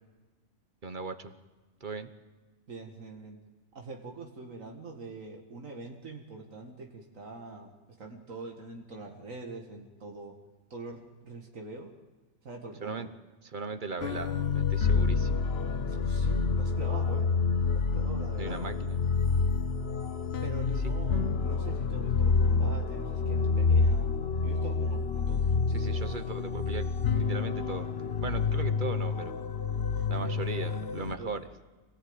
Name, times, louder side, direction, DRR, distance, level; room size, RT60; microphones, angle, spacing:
voice 1, 0.8-1.3 1.8-2.1 12.8-13.1 13.5-15.5 18.4-19.0 25.7-27.9 28.2-29.3 30.1-31.4, right 4 dB, 40° right, 10 dB, 1.2 m, -38 dB
voice 2, 2.7-3.4 3.7-7.7 8.0-10.4 10.7-11.9 12.4-13.1 15.8-17.3 17.7-18.7 20.4-24.1 24.4-25.6 29.9-30.6 31.2-31.3, right 3 dB, 90° right, 2 dB, 2.4 m, -44 dB
sound 1, 14.0-31.2, left 4 dB, 55° left, 1.1 m, -28 dB
25.5 x 18.5 x 8.9 m, 1.3 s
omnidirectional pair, 1.3 m